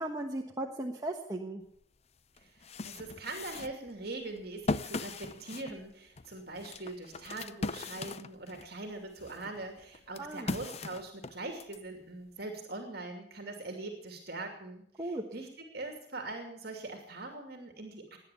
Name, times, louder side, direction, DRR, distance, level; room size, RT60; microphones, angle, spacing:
voice 1, 0.0-1.6 10.2-10.5 15.0-15.2, right 1 dB, 20° right, 0 dB, 1.3 m, -36 dB
sound 1, 1.8-1.9 2.4-8.7 9.2-11.8, left 3 dB, 35° left, 0.5 m, -39 dB
voice 2, 2.4-18.2, right 2 dB, 55° right, 4 dB, 2.6 m, -42 dB
18.5 x 10.5 x 7.0 m, 0.70 s
head